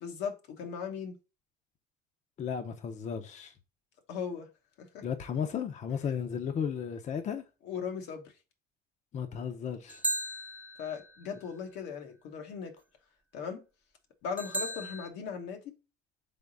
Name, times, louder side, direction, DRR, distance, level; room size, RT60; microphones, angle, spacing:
voice 1, 0.0-1.2 4.1-4.5 4.8-5.0 7.6-8.2 10.8-12.7 13.3-13.6 14.2-15.8, left 6 dB, 90° left, 1.0 m, -38 dB
voice 2, 2.4-3.5 5.0-7.4 9.1-10.0, left 7 dB, 45° left, 0.6 m, -34 dB
sound 1, 9.9-11.2 14.4-15.1, right 1 dB, 10° right, 0.5 m, -35 dB
3.8 x 3.5 x 3.8 m
cardioid pair, 110°, 17 cm